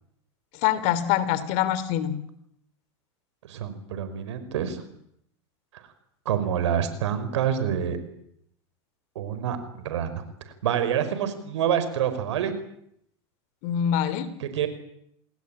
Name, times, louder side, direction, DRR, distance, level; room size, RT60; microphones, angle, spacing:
voice 1, 0.6-2.2 13.6-14.3, left 10 dB, 55° left, 15 dB, 3.2 m, -24 dB
voice 2, 3.4-4.8 5.7-5.8 6.2-8.0 9.1-10.2 10.6-12.5 14.4-14.7, right 9 dB, 80° right, 11 dB, 5.1 m, -27 dB
28.5 x 20.0 x 8.9 m, 0.74 s
hypercardioid pair, 105°, 15 cm